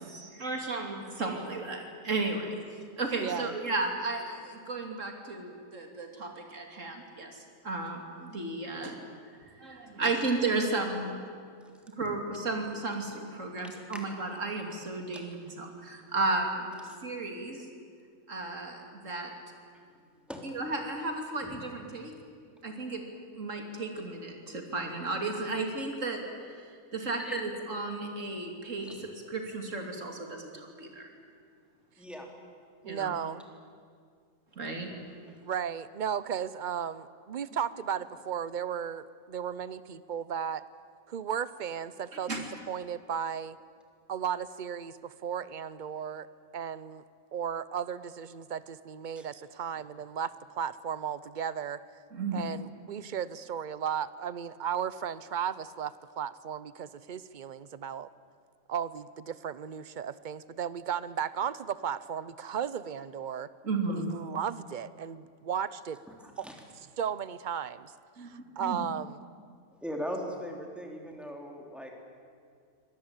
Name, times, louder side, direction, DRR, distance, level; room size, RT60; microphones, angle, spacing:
voice 1, 0.1-2.6 3.0-7.4 7.6-9.0 9.6-11.1 12.0-16.7 17.0-17.7 18.3-19.3 20.4-22.1 22.6-23.0 23.3-31.1 32.8-33.1 34.6-34.9 42.3-42.4 52.1-52.5 63.6-64.2 68.2-68.8, right 3 dB, 60° right, 3 dB, 3.3 m, -34 dB
voice 2, 3.2-3.6 32.8-33.4 35.4-40.6 41.1-42.3 42.7-43.6 44.1-46.3 46.5-47.0 47.3-51.8 52.3-58.1 58.7-63.5 63.9-66.0 66.4-66.5 67.0-67.9 68.2-69.2, right 8 dB, 45° right, 16 dB, 0.7 m, -35 dB
voice 3, 32.0-32.3 49.2-49.3 66.2-66.5 69.8-71.9, equal, ahead, 1 dB, 3.5 m, -39 dB
24.5 x 18.5 x 9.0 m, 2.1 s
omnidirectional pair, 1.5 m